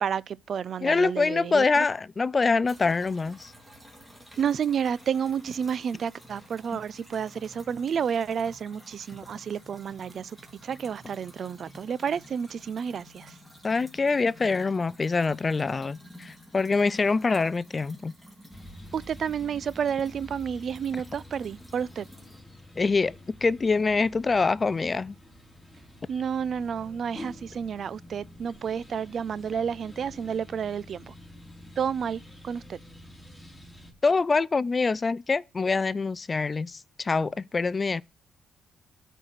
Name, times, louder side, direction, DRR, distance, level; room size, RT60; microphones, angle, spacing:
voice 1, 0.0-1.9 4.4-10.4 10.6-13.4 18.9-22.1 26.1-31.1 31.8-32.8, right 7 dB, 55° right, 0.4 m, -30 dB
voice 2, 0.8-3.5 13.6-18.1 22.8-25.2 34.0-38.0, left 4 dB, 30° left, 0.3 m, -25 dB
sound 1, 2.6-22.4, equal, 10° right, 2.8 m, -51 dB
sound 2, 18.5-33.9, left 1 dB, 10° left, 2.6 m, -48 dB
13.0 x 4.5 x 3.9 m
cardioid pair, 90°, 0 cm